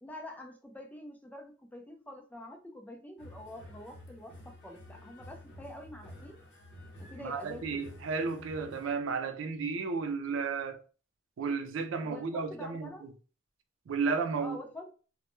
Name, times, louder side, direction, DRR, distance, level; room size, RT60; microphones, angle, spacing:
voice 1, 0.0-6.4 7.0-7.9 12.0-13.1 14.4-14.9, left 1 dB, 10° left, 0.3 m, -46 dB
sound 1, 3.2-9.0, left 1 dB, 60° left, 0.6 m, -51 dB
voice 2, 7.2-10.8 11.4-12.9 13.9-14.6, right 5 dB, 90° right, 0.4 m, -33 dB
2.1 x 2.0 x 3.0 m
head